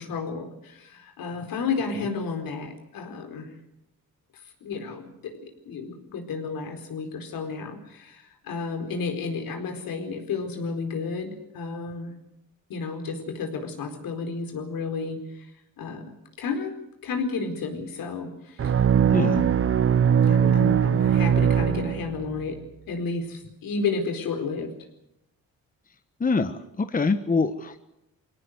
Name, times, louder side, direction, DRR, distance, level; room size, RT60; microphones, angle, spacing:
voice 1, 0.0-3.5 4.6-12.1 12.7-15.2 15.8-16.0 16.4-16.7 17.0-18.7 19.0-19.6 20.2-22.6 22.9-24.7, left 4 dB, 75° left, 5 dB, 4.5 m, -32 dB
sound 1, 18.6-22.4, right 8 dB, 40° right, 0.8 m, -21 dB
voice 2, 19.1-19.4 26.2-27.8, left 4 dB, 25° left, 9 dB, 1.2 m, -25 dB
23.0 x 18.0 x 8.0 m, 0.83 s
cardioid pair, 95°, 35 cm